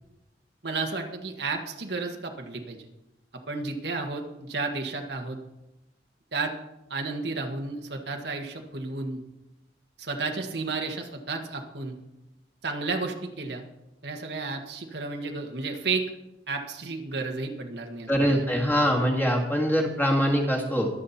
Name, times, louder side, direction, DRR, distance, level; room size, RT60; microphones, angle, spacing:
voice 1, 0.6-2.8 3.5-5.4 6.3-6.5 6.9-9.2 10.0-12.0 12.6-13.6 14.0-16.0 16.5-18.4, right 3 dB, 70° right, 3 dB, 1.6 m, -32 dB
voice 2, 18.1-20.9, equal, 10° left, 0 dB, 2.0 m, -23 dB
22.5 x 7.6 x 4.3 m, 0.92 s
head